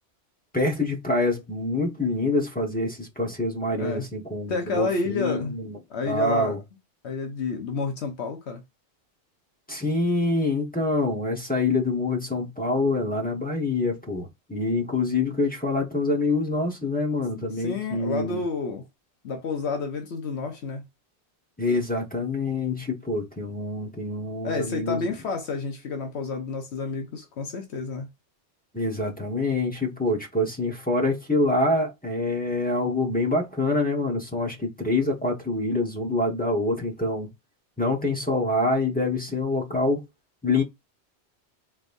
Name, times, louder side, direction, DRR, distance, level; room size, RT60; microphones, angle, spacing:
voice 1, 0.5-5.8 6.1-6.6 9.7-18.4 21.6-25.1 28.7-37.3 37.8-40.0 40.4-40.6, left 2 dB, 10° left, 0.9 m, -26 dB
voice 2, 3.7-4.0 4.5-5.5 5.9-6.6 7.0-8.6 17.4-18.9 19.2-20.8 24.4-28.1, left 4 dB, 75° left, 1.1 m, -30 dB
3.9 x 3.4 x 2.5 m
omnidirectional pair, 1.2 m